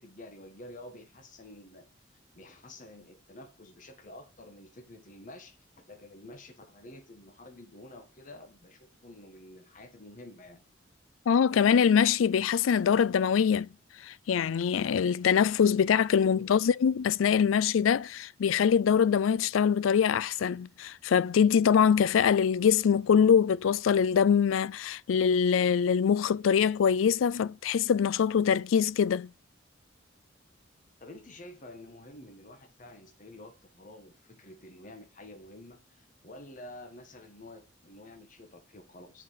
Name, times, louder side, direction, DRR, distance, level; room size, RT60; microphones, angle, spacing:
voice 1, 0.0-1.9 2.1-10.6 16.3-16.4 31.0-39.2, left 1 dB, 40° left, 1.3 m, -49 dB
voice 2, 11.3-13.7 14.0-29.3, left 7 dB, 85° left, 0.4 m, -24 dB
7.6 x 4.9 x 5.7 m
head